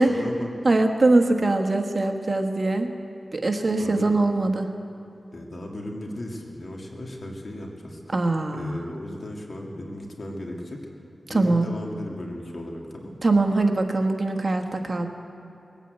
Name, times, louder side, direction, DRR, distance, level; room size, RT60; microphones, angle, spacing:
voice 1, 0.0-0.5 3.5-4.2 5.3-8.2 8.5-10.8 11.3-13.2, left 1 dB, 55° left, 0 dB, 2.4 m, -36 dB
voice 2, 0.6-2.9 3.3-4.7 8.1-8.8 11.3-11.7 13.2-15.1, right 2 dB, 45° right, 4 dB, 1.3 m, -22 dB
20.0 x 8.9 x 8.0 m, 2.9 s
wide cardioid pair, 70°, 0 cm